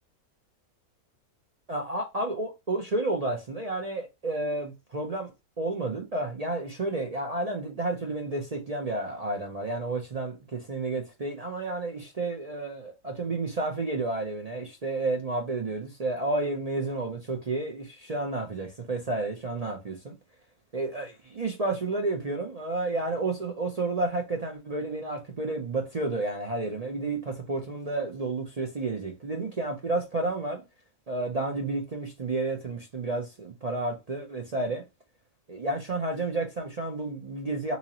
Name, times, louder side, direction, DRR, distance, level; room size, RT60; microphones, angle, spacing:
voice 1, 1.7-5.3 5.6-20.1 20.7-30.6 31.1-34.8 35.5-37.8, right 2 dB, 50° right, 0.4 m, -31 dB
3.8 x 2.8 x 2.9 m
omnidirectional pair, 1.5 m